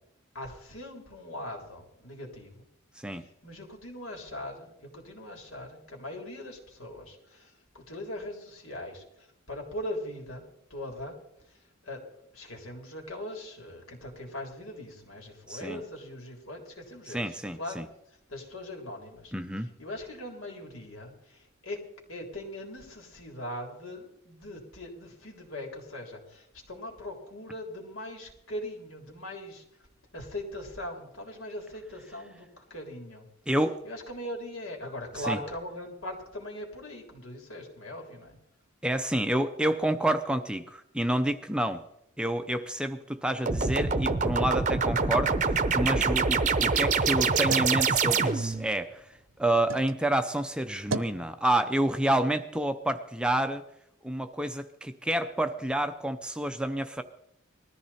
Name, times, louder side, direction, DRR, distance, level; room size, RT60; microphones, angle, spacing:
voice 1, 0.4-2.5 3.4-7.2 7.9-9.0 9.5-10.4 10.7-11.1 11.9-12.0 12.3-17.2 17.6-17.8 18.3-19.3 19.8-21.1 21.6-21.8 22.1-29.6 30.1-33.2 33.9-38.3, left 1 dB, 75° left, 2 dB, 3.6 m, -40 dB
voice 2, 15.5-15.8 17.1-17.9 19.3-19.7 33.5-33.8 35.1-35.4 38.8-41.8 42.2-53.6 54.0-57.0, right 1 dB, 5° right, 8 dB, 0.6 m, -29 dB
sound 1, 43.5-48.7, right 4 dB, 35° right, 0.8 m, -25 dB
sound 2, 47.3-50.0 50.4-51.2, right 3 dB, 65° right, 0.8 m, -40 dB
20.0 x 14.0 x 4.3 m, 0.77 s
head